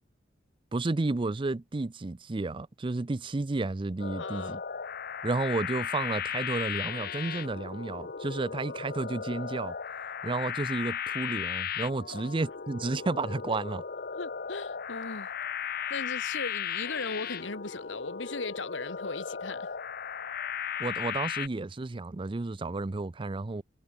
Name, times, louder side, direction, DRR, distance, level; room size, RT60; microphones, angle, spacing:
voice 1, 0.7-4.6 5.2-9.8 10.2-13.8 20.8-23.6, right 3 dB, 25° right, 0.5 m, -32 dB
sound 1, 4.0-21.5, left 8 dB, 55° left, 0.9 m, -36 dB
voice 2, 4.2-4.6 12.1-12.3 14.2-15.3 15.9-19.7, left 3 dB, 80° left, 1.8 m, -38 dB
head